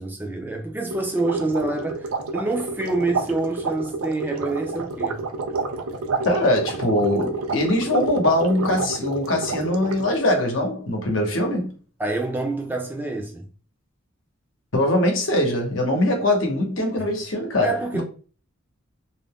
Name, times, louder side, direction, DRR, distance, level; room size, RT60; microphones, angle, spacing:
voice 1, 0.0-2.1 2.3-5.2 12.0-13.5 17.6-18.0, right 2 dB, 10° right, 0.5 m, -27 dB
sound 1, 0.9-10.3, right 3 dB, 85° right, 0.5 m, -29 dB
voice 2, 6.2-11.7 14.7-18.0, left 1 dB, 65° left, 0.9 m, -22 dB
2.5 x 2.2 x 3.5 m
head